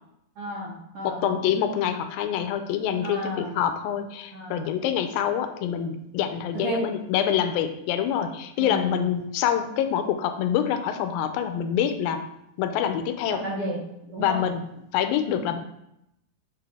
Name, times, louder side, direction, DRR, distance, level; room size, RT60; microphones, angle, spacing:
voice 1, 0.4-1.3 3.0-3.6 4.3-4.7 6.5-6.8 8.6-9.0 13.4-13.8 14.1-14.5, right 1 dB, 75° right, -6 dB, 1.3 m, -32 dB
voice 2, 1.0-12.2 12.6-13.4 14.2-14.7 14.9-15.6, left 9 dB, 80° left, 8 dB, 2.3 m, -26 dB
7.7 x 4.2 x 3.5 m, 0.82 s
omnidirectional pair, 4.3 m